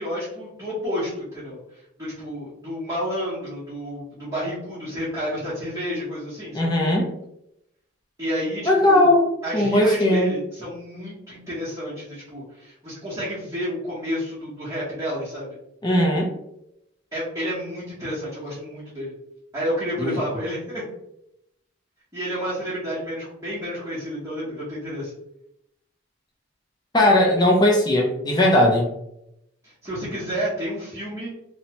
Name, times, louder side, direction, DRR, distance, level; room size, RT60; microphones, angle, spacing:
voice 1, 0.0-6.7 8.2-9.1 9.4-15.6 17.1-19.1 19.5-20.8 22.1-25.1 29.6-31.3, equal, 15° right, -11 dB, 0.9 m, -30 dB
voice 2, 6.5-7.1 8.6-10.3 15.8-16.3 20.0-20.2 26.9-28.9, left 1 dB, 20° left, 0 dB, 0.4 m, -18 dB
2.8 x 2.1 x 2.8 m, 0.81 s
head